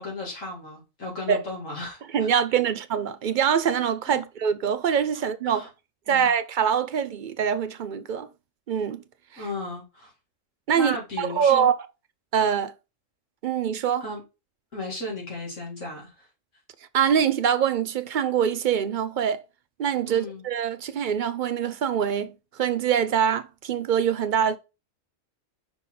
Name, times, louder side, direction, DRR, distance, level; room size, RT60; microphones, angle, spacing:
voice 1, 0.0-2.0 4.1-4.3 5.5-5.7 6.1-6.3 9.4-10.1 10.7-11.7 14.0-14.2 14.7-16.3 20.1-20.4, left 2 dB, 75° left, 2.5 m, -35 dB
voice 2, 2.1-5.7 6.1-8.3 8.7-9.0 9.3-9.4 10.7-11.7 12.3-12.7 13.4-14.0 16.9-19.4 19.8-24.6, right 8 dB, 60° right, 0.5 m, -24 dB
5.8 x 4.1 x 3.8 m
omnidirectional pair, 1.3 m